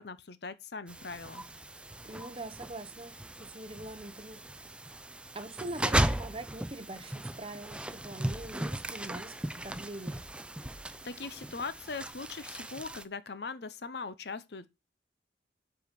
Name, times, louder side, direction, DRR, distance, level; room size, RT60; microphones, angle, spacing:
voice 1, 0.0-1.4 11.0-14.7, left 4 dB, 60° left, 0.7 m, -40 dB
sound 1, 0.9-13.0, right 1 dB, 5° right, 0.4 m, -36 dB
voice 2, 2.0-4.4 5.3-10.2, right 2 dB, 30° right, 0.8 m, -43 dB
7.8 x 5.0 x 5.2 m
head